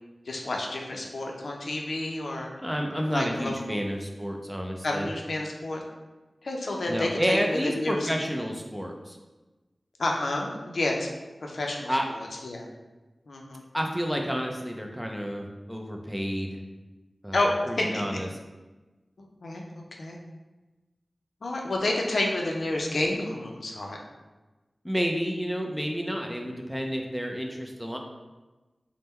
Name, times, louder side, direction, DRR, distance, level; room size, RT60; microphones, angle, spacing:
voice 1, 0.3-2.5 3.1-3.6 4.8-5.8 6.4-8.1 10.0-11.1 11.4-12.7 13.3-13.6 17.3-17.5 17.8-18.2 19.2-20.2 21.4-24.0, left 2 dB, 90° left, 0 dB, 0.5 m, -30 dB
voice 2, 2.6-5.1 6.9-9.2 11.9-12.1 13.7-16.6 17.2-18.3 24.8-28.0, equal, 5° right, 2 dB, 0.5 m, -30 dB
3.6 x 2.1 x 4.2 m, 1.1 s
wide cardioid pair, 70°, 0 cm